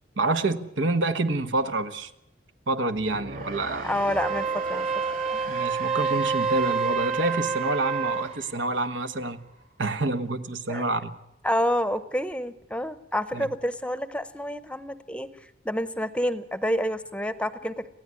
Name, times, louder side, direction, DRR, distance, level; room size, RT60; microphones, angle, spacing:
voice 1, 0.2-2.1 2.7-3.9 5.5-9.4 9.8-11.1 13.3-13.5, right 2 dB, 85° right, 9 dB, 1.3 m, -27 dB
sound 1, 2.9-9.8, right 2 dB, 50° right, 5.8 m, -40 dB
voice 2, 3.8-4.9 5.3-5.4 10.7-10.8 11.4-15.3 15.6-17.9, equal, 5° left, 13 dB, 0.8 m, -28 dB
Wind instrument woodwind instrument, 4.1-8.3, right 5 dB, 35° right, 1.4 m, -27 dB
28.0 x 15.5 x 9.7 m, 0.87 s
head